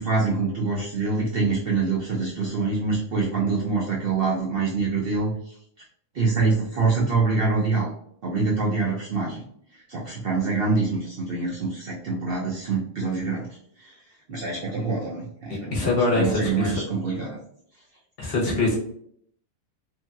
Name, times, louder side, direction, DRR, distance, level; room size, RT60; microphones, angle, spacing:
voice 1, 0.0-5.5 6.1-7.9 8.2-9.4 9.7-13.5 13.8-13.9 14.3-17.4, right 4 dB, 60° right, -4 dB, 0.6 m, -25 dB
voice 2, 15.7-16.8 18.2-18.8, left 2 dB, 55° left, -3 dB, 0.8 m, -23 dB
3.0 x 2.6 x 2.2 m, 0.67 s
omnidirectional pair, 1.4 m